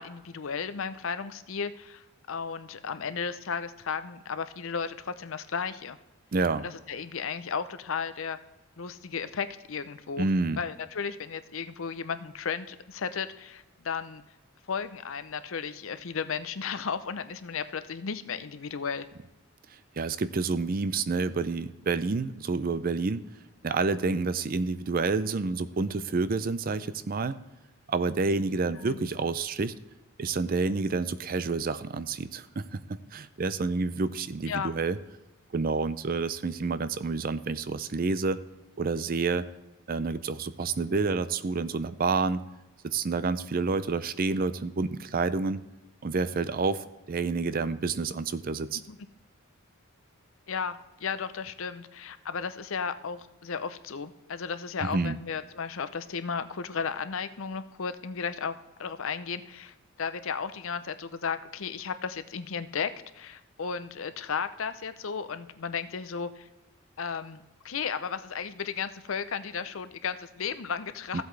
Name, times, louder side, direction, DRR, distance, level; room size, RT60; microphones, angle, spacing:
voice 1, 0.0-6.0 6.6-8.4 8.8-10.3 10.6-14.2 14.7-19.1 28.8-29.0 34.5-34.7 48.9-49.0 50.5-58.5 58.8-66.5 67.0-71.2, left 6 dB, 65° left, 12 dB, 0.6 m, -34 dB
voice 2, 6.3-6.7 10.2-10.6 19.7-23.2 23.6-27.4 27.9-29.7 30.2-35.0 35.5-38.4 38.8-39.5 39.9-42.4 42.8-45.6 46.0-48.8 54.8-55.2 71.1-71.2, right 4 dB, 40° right, 14 dB, 0.4 m, -29 dB
15.0 x 8.0 x 3.3 m, 1.1 s
head